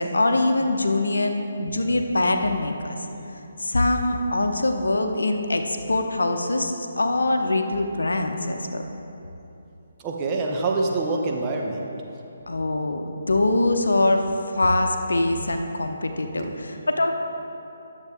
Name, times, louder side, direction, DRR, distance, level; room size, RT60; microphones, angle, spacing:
voice 1, 0.0-3.0 3.6-8.8 12.5-17.1, left 2 dB, 75° left, 5 dB, 0.7 m, -23 dB
voice 2, 10.0-11.9 16.3-16.7, right 3 dB, 20° right, -1 dB, 0.9 m, -26 dB
10.5 x 7.3 x 3.5 m, 2.9 s
figure-of-eight pair, 145°, 0 cm